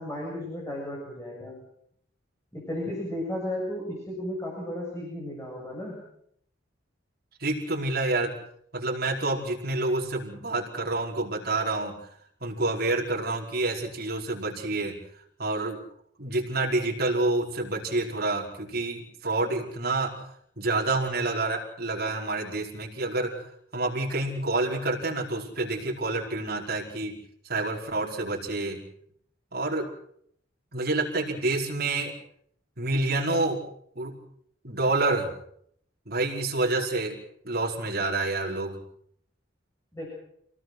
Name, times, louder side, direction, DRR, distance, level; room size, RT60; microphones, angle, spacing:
voice 1, 0.0-1.6 2.5-6.0 39.9-40.1, left 1 dB, 15° left, -2 dB, 7.4 m, -34 dB
voice 2, 7.4-8.3 8.7-12.0 12.4-15.0 15.4-15.8 16.2-20.2 20.6-27.2 27.4-28.8 29.5-29.9 30.7-32.1 32.8-33.6 33.9-34.2 34.6-35.3 36.1-37.1 37.4-38.8, right 2 dB, 55° right, -1 dB, 5.0 m, -28 dB
27.5 x 18.5 x 6.3 m, 0.70 s
head